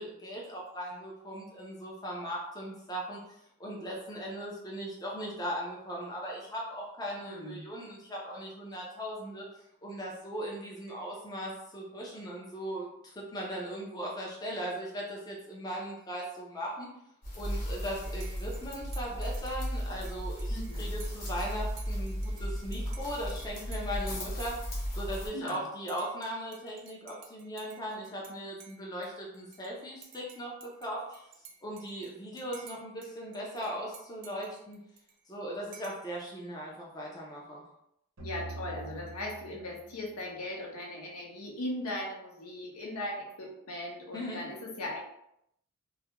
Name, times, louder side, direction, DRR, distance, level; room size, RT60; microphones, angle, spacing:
voice 1, 0.0-9.5 9.8-16.9 17.3-31.3 31.6-34.8 35.3-37.6 44.1-44.4, equal, 20° left, -3 dB, 0.4 m, -38 dB
voice 2, 7.2-7.7 20.5-20.9 25.3-25.6 38.2-45.0, left 1 dB, 90° left, -1 dB, 0.7 m, -38 dB
sound 1, 17.2-25.3, equal, 40° left, 0.9 m, -35 dB
Dishes pots and pans / Cutlery silverware / Chink clink, 18.0-28.3 28.6-29.7 30.0-33.1 33.3-35.3 35.7-36.1, right 7 dB, 55° right, 0.4 m, -54 dB
sound 2, 38.2-41.4, right 2 dB, 85° right, 0.9 m, -45 dB
2.3 x 2.1 x 2.9 m, 0.78 s
head